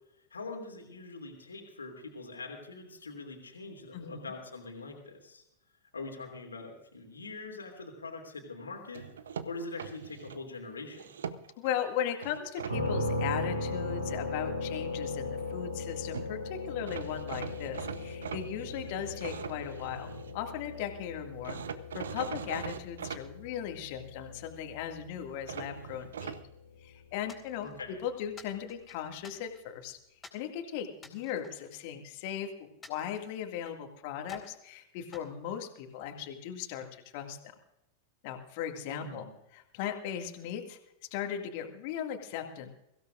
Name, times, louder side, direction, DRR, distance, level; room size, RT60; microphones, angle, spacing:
voice 1, 0.2-5.4 5.9-9.1 9.4-11.1 27.6-28.0 38.8-39.3, left 3 dB, 75° left, 1 dB, 2.9 m, -43 dB
voice 2, 3.9-4.3 11.6-21.6 21.9-26.4 26.8-30.0 30.3-37.5 38.2-39.3 39.5-40.8 41.1-42.7, left 9 dB, 45° left, 4 dB, 2.2 m, -38 dB
sound 1, 8.9-10.4 10.9-11.7 12.2-12.8 15.9-16.0 16.1-16.3 16.9-20.3 21.4-23.2 25.5-26.4, right 7 dB, 65° right, 0.9 m, -41 dB
sound 2, 12.7-26.4, left 2 dB, 85° right, 6.6 m, -38 dB
sound 3, 27.3-27.9 28.4-29.8 30.2-30.5 30.9-32.3 32.8-33.8 34.2-34.6 35.1-36.2, left 4 dB, 15° left, 3.8 m, -52 dB
23.5 x 16.5 x 2.6 m, 0.84 s
figure-of-eight pair, 90°, 0 cm